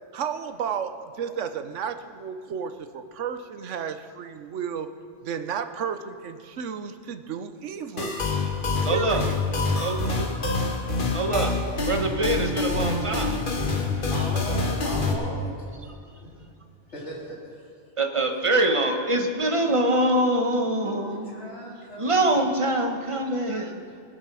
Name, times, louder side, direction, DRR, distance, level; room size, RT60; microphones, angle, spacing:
voice 1, 0.1-0.9 1.2-4.9 5.2-8.2 8.9-9.4, right 7 dB, 75° right, 9 dB, 1.1 m, -32 dB
sound 1, 8.0-15.1, left 3 dB, 45° left, 1.5 m, -26 dB
voice 2, 8.8-9.2 9.8-10.3 11.1-13.4 18.0-21.3 22.0-23.8, right 1 dB, 25° right, 3 dB, 1.3 m, -24 dB
voice 3, 14.1-15.7 16.9-17.8 20.8-22.6, equal, 65° left, -5 dB, 3.9 m, -38 dB
20.5 x 7.5 x 6.2 m, 2.4 s
omnidirectional pair, 1.3 m